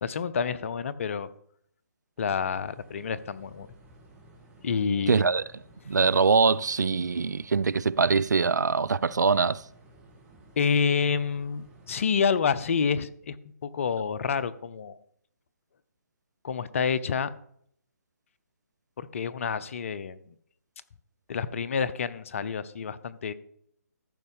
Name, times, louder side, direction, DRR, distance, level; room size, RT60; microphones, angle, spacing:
voice 1, 0.0-1.3 2.2-3.7 4.6-5.3 10.6-13.4 13.6-15.0 16.4-17.3 19.0-20.3 21.3-23.3, left 6 dB, 50° left, 0.7 m, -28 dB
sound 1, 2.2-12.0, right 2 dB, 15° right, 2.6 m, -55 dB
voice 2, 5.1-5.4 5.9-9.6, right 5 dB, 80° right, 0.4 m, -23 dB
14.0 x 5.5 x 5.3 m
figure-of-eight pair, 145°, 9 cm